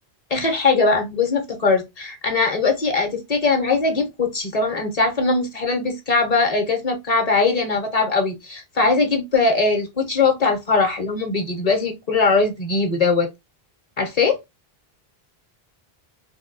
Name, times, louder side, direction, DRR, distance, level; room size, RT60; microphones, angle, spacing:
voice 1, 0.3-13.3 14.0-14.4, left 4 dB, 40° left, 0.8 m, -20 dB
3.5 x 2.2 x 2.5 m
omnidirectional pair, 1.0 m